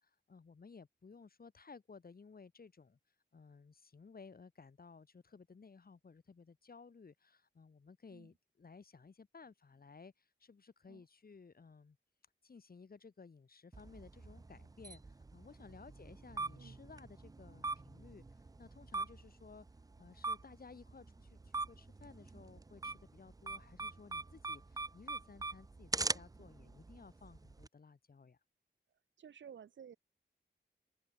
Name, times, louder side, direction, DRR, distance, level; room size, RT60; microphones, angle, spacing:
voice 1, 0.0-3.0 3.3-12.0 12.4-19.7 20.0-28.4, left 5 dB, 50° left, 1.4 m, -57 dB
sound 1, 13.7-27.7, right 3 dB, 20° right, 0.4 m, -43 dB
voice 2, 29.2-30.0, right 8 dB, 80° right, 0.5 m, -54 dB
wide cardioid pair, 115°, 19 cm